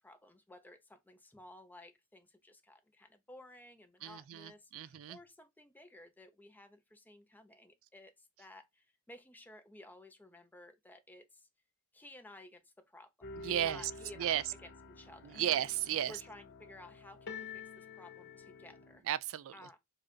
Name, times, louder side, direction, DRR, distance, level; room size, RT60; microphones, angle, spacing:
voice 1, 0.0-11.5 11.9-13.1 13.6-15.4 16.1-19.0 19.5-19.8, left 1 dB, 10° left, 0.7 m, -55 dB
voice 2, 4.0-5.2 13.4-13.8 14.2-14.4 15.4-16.1 19.1-19.5, right 11 dB, 65° right, 0.4 m, -34 dB
sound 1, 13.2-19.0, left 4 dB, 50° left, 0.7 m, -49 dB
4.8 x 2.5 x 4.3 m
head